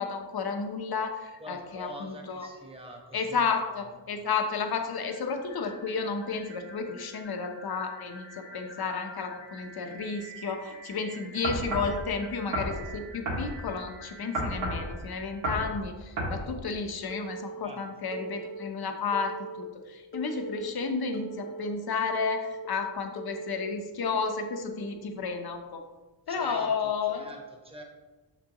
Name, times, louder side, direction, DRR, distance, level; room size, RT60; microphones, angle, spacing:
voice 1, 0.0-2.5 3.1-8.2 8.5-25.8 26.3-27.3, left 5 dB, 55° left, 5 dB, 0.9 m, -32 dB
voice 2, 1.4-3.4 17.6-17.8 26.3-27.8, right 1 dB, 15° right, 1 dB, 1.0 m, -45 dB
sound 1, 4.6-16.5, right 1 dB, 90° left, 1.5 m, -49 dB
sound 2, 11.4-12.0 12.5-12.8 13.3-13.5 14.3-14.9 15.4-15.7 16.2-16.4, right 1 dB, 75° right, 1.9 m, -30 dB
Telephone, 17.1-17.6 18.1-18.6 19.1-19.6 20.1-20.6 21.1-21.7 22.1-22.7 23.2-23.7 24.2-24.7, right 4 dB, 30° left, 0.6 m, -40 dB
7.3 x 6.1 x 3.0 m, 1.2 s
wide cardioid pair, 155°, 44 cm